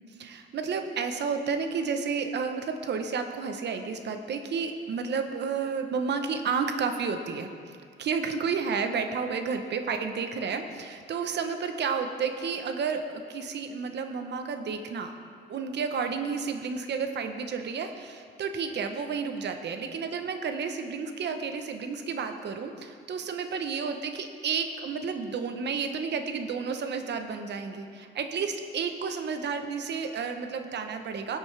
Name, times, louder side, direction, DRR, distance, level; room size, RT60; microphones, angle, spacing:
voice 1, 0.2-7.5 8.0-15.1 15.5-31.4, right 5 dB, 60° right, 7 dB, 0.9 m, -31 dB
16.5 x 8.0 x 3.4 m, 2.2 s
cardioid pair, 90°, 20 cm